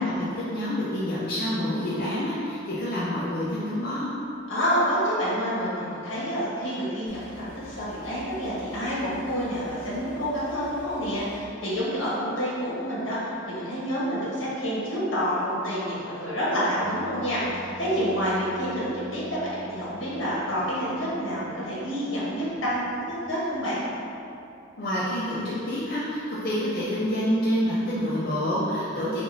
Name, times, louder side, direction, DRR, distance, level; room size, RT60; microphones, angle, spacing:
voice 1, 0.0-4.1 24.8-29.2, equal, 55° left, -9 dB, 0.6 m, -27 dB
voice 2, 4.5-23.8, equal, 85° left, -9 dB, 1.5 m, -28 dB
sound 1, 7.1-11.5, right 1 dB, 15° left, 0.6 m, -48 dB
sound 2, 16.8-23.4, equal, 90° right, 0.7 m, -45 dB
6.0 x 2.6 x 2.7 m, 2.7 s
head